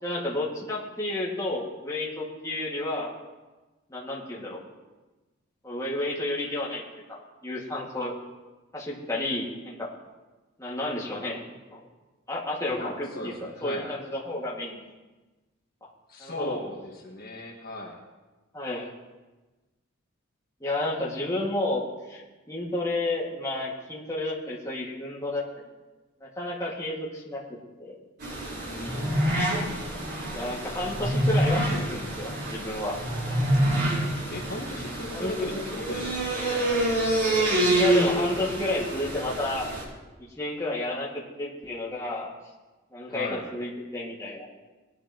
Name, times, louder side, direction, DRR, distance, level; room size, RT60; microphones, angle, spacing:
voice 1, 0.0-3.1 3.9-4.6 5.6-6.8 7.1-8.1 8.7-9.9 10.6-11.4 11.7-11.8 12.3-14.8 15.8-15.9 16.2-16.6 18.5-18.9 20.6-22.2 22.5-25.4 26.2-27.4 27.8-28.0 30.3-33.0 35.1-35.6 37.7-39.7 40.4-42.3 42.9-44.5, left 2 dB, 15° left, -5 dB, 2.0 m, -31 dB
voice 2, 12.7-13.9 16.1-18.0 28.6-29.4 34.3-36.3 43.1-43.4, left 1 dB, 45° left, -1 dB, 1.6 m, -37 dB
sound 1, 28.2-39.8, right 1 dB, 50° right, 4.1 m, -27 dB
19.5 x 11.0 x 3.0 m, 1.2 s
head